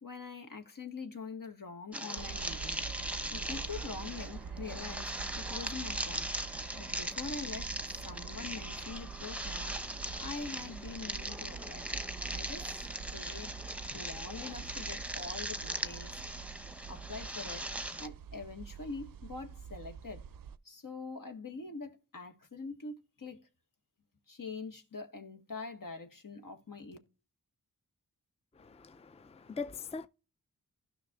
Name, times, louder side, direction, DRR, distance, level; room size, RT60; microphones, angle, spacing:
voice 1, 0.0-2.8 3.3-5.1 5.4-6.3 6.8-7.7 8.0-9.7 10.2-13.5 13.9-16.2 16.9-17.7 18.0-20.2 20.6-23.4 24.3-27.0, left 4 dB, 70° left, 1.6 m, -44 dB
sound 1, 1.9-18.1, right 1 dB, 5° right, 0.8 m, -40 dB
sound 2, 2.2-20.6, right 6 dB, 75° right, 0.5 m, -46 dB
voice 2, 28.5-30.1, left 4 dB, 20° left, 0.5 m, -42 dB
16.0 x 5.8 x 2.4 m
cardioid pair, 45°, 35 cm